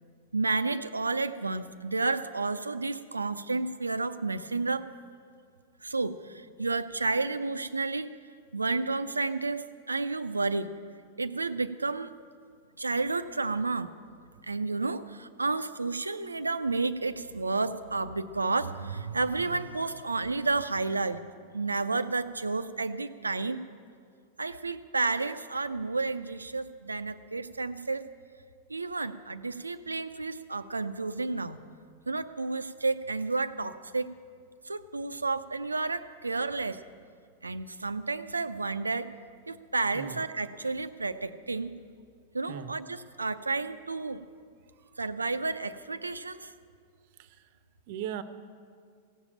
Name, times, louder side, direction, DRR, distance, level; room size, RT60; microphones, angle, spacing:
voice 1, 0.3-4.9 5.8-8.1 8.5-10.7 11.2-12.1 12.8-13.9 14.5-21.2 21.5-23.6 24.4-28.0 28.7-31.6 32.1-34.1 34.7-36.8 37.4-39.1 39.5-41.7 42.3-44.2 45.0-46.5, right 3 dB, 90° right, 12 dB, 0.5 m, -31 dB
voice 2, 39.9-40.3 42.5-42.8 44.8-44.9 47.2-47.5 47.9-48.2, right 10 dB, 55° right, 12 dB, 0.8 m, -39 dB
16.5 x 7.4 x 8.7 m, 2.2 s
figure-of-eight pair, 95°, 0 cm